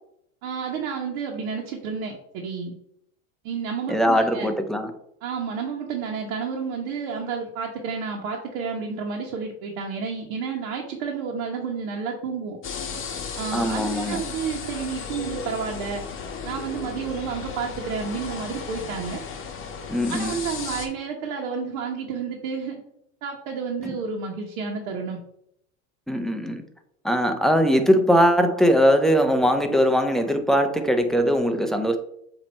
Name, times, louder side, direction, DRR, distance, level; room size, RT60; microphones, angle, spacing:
voice 1, 0.4-2.7 3.4-4.5 5.2-12.6 13.4-16.0 16.4-19.2 20.1-22.8 23.2-25.2, right 5 dB, 65° right, -1 dB, 1.3 m, -30 dB
voice 2, 3.9-4.9 13.5-14.2 19.9-20.4 26.1-26.6 27.0-32.0, equal, ahead, 6 dB, 0.3 m, -20 dB
sound 1, 12.6-20.9, left 5 dB, 30° left, 1.2 m, -35 dB
7.4 x 2.9 x 4.3 m, 0.74 s
hypercardioid pair, 105°, 43 cm